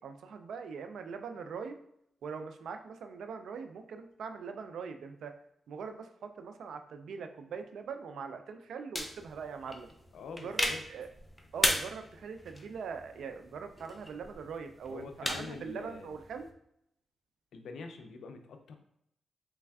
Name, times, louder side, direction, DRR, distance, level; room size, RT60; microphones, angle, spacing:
voice 1, 0.0-1.8 2.2-5.4 5.7-9.9 10.4-11.1 11.5-16.5, right 6 dB, 80° right, 7 dB, 0.3 m, -42 dB
sound 1, 8.9-16.5, left 1 dB, 10° left, 0.5 m, -37 dB
voice 2, 10.1-10.8 14.9-16.1 17.5-18.8, left 4 dB, 80° left, 6 dB, 0.4 m, -45 dB
3.3 x 3.2 x 2.3 m, 0.75 s
cardioid pair, 75°, 0 cm